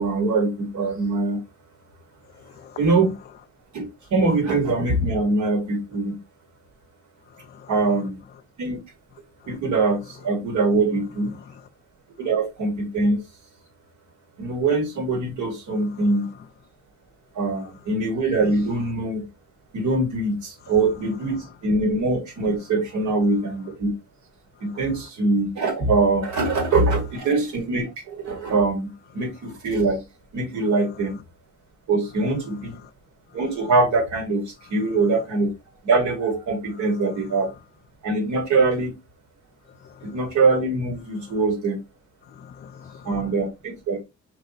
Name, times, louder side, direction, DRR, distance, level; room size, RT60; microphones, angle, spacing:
voice 1, 0.0-1.4 2.8-3.1 3.7-6.2 7.7-8.2 8.6-8.8 9.5-11.3 12.2-13.2 14.4-16.3 17.3-19.2 19.7-23.9 24.6-30.0 30.3-31.2 31.9-32.8 33.3-35.5 35.8-37.5 38.0-39.0 40.0-41.8 43.0-44.0, right 3 dB, 70° right, 1.7 m, -23 dB
voice 2, 2.3-2.8 7.3-8.1 9.4-9.6 11.3-11.7 15.7-16.1 20.6-20.7 21.3-21.5 24.6-24.8 32.4-32.9 34.8-34.9 37.1-37.3 39.7-40.3 41.3-41.4 42.2-43.3, left 8 dB, 35° left, 0.4 m, -46 dB
4.7 x 3.3 x 2.8 m
cardioid pair, 90°, 30 cm